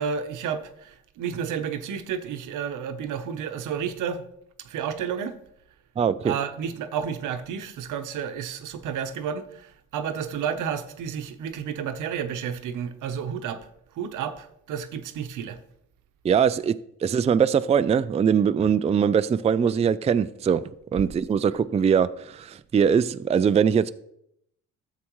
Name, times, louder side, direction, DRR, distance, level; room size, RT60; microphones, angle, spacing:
voice 1, 0.0-4.2 4.6-5.4 6.2-13.7 14.0-15.6, right 7 dB, 85° right, 0.9 m, -31 dB
voice 2, 6.0-6.3 16.2-16.7 17.0-20.6 20.9-23.9, right 7 dB, 20° right, 0.3 m, -22 dB
13.0 x 7.7 x 3.1 m
cardioid pair, 90°, 30 cm